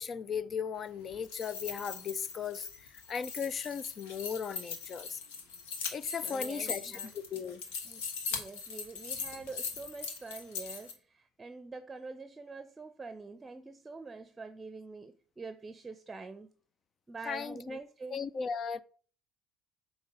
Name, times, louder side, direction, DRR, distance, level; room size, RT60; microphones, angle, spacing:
voice 1, 0.0-2.7 2.9-5.2 5.9-7.6 17.3-17.8 18.1-18.8, left 6 dB, 45° left, 0.4 m, -37 dB
sound 1, 1.1-10.9, left 5 dB, 85° left, 1.1 m, -40 dB
voice 2, 6.2-7.1 7.8-8.0 8.3-16.5 17.1-18.2, right 4 dB, 25° right, 0.6 m, -45 dB
7.9 x 2.9 x 5.4 m
hypercardioid pair, 70°, 0 cm